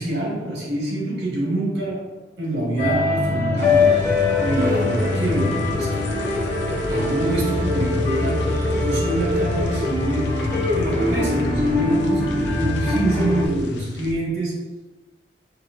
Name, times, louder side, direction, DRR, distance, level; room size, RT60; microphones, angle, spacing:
voice 1, 0.0-4.1 4.4-6.1 6.8-14.6, right 1 dB, 75° right, -4 dB, 1.4 m, -26 dB
sound 1, 2.8-13.5, left 2 dB, 15° left, 1.0 m, -22 dB
sound 2, 3.6-14.1, left 3 dB, 70° left, 0.4 m, -30 dB
4.3 x 3.3 x 2.5 m, 1.2 s
head